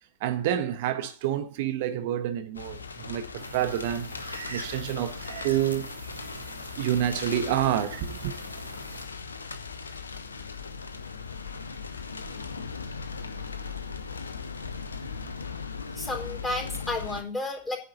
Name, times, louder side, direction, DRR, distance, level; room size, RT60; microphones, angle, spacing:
voice 1, 0.2-4.1 4.5-5.9 6.8-8.3, right 11 dB, 50° right, 1.3 m, -28 dB
sound 1, 2.5-17.2, left 5 dB, 75° left, 1.1 m, -38 dB
sound 2, 3.4-9.0, right 2 dB, 80° right, 2.2 m, -43 dB
voice 2, 15.9-17.8, left 2 dB, 10° left, 4.4 m, -32 dB
10.0 x 5.4 x 8.1 m
figure-of-eight pair, 90°, 0 cm